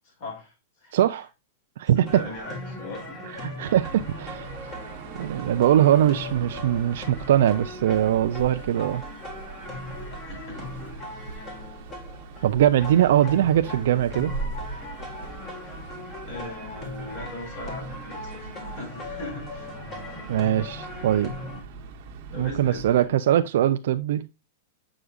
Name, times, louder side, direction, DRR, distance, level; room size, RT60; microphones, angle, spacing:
voice 1, 0.0-1.0 1.9-3.3 10.2-10.6 11.4-11.5 12.4-12.5 16.2-19.7 20.9-21.1 22.3-23.1, left 2 dB, 50° left, 4.1 m, -39 dB
voice 2, 0.9-1.3 1.8-2.2 3.3-4.5 5.1-9.0 12.4-14.3 20.3-21.3 22.4-24.3, right 11 dB, 65° right, 0.3 m, -21 dB
sound 1, 2.1-21.6, left 2 dB, 20° left, 1.6 m, -39 dB
sound 2, 3.6-23.1, right 6 dB, 40° right, 1.0 m, -43 dB
sound 3, 7.9-11.5 11.7-12.0 12.4-12.7 13.2-17.0, right 2 dB, 80° left, 1.5 m, -41 dB
8.0 x 4.9 x 2.4 m
supercardioid pair, 160°, 0 cm